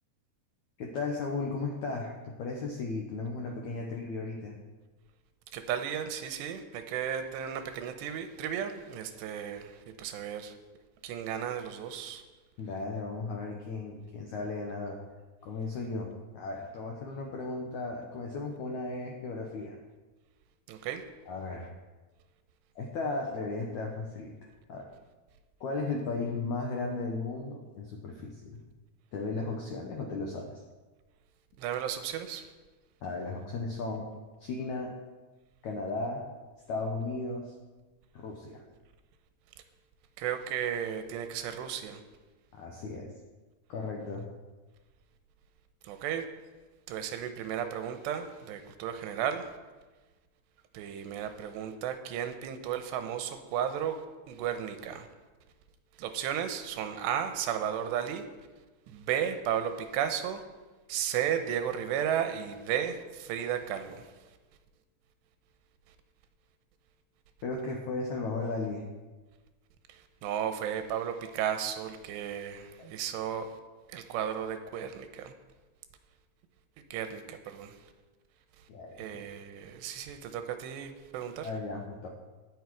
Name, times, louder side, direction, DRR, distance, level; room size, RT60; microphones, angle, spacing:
voice 1, 0.8-4.6 12.6-15.0 15.4-16.1 16.3-19.8 21.3-21.7 22.7-24.3 24.7-24.9 25.6-28.6 29.1-30.6 33.0-34.1 34.4-34.9 35.6-36.2 36.7-37.5 38.1-38.6 42.5-43.1 43.7-44.3 67.4-68.8 72.8-72.9 78.7-79.0 81.4-82.1, left 3 dB, 80° left, 0 dB, 1.7 m, -35 dB
voice 2, 5.5-10.5 11.0-12.2 20.7-21.0 31.6-32.5 40.2-42.0 45.8-46.2 46.9-49.5 50.7-55.1 56.0-58.2 58.9-60.4 60.9-64.1 69.9-73.5 73.9-75.3 76.9-77.8 79.0-81.5, right 9 dB, 90° right, 8 dB, 3.0 m, -34 dB
17.5 x 6.3 x 4.7 m, 1.3 s
omnidirectional pair, 4.9 m